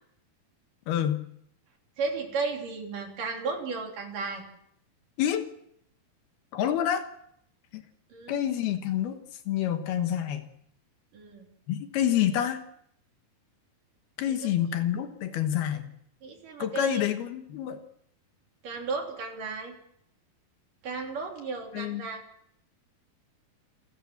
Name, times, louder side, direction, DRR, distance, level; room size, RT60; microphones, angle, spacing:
voice 1, 0.9-1.2 5.2-5.5 6.5-7.1 7.7-7.8 8.3-10.4 11.7-12.6 14.2-15.9 16.6-17.8 21.7-22.1, left 10 dB, 75° left, 8 dB, 3.2 m, -28 dB
voice 2, 2.0-4.4 8.1-8.4 11.1-11.5 16.2-17.0 18.6-19.7 20.8-22.2, right 4 dB, 55° right, 2 dB, 4.6 m, -34 dB
28.0 x 14.0 x 7.3 m, 0.71 s
omnidirectional pair, 4.7 m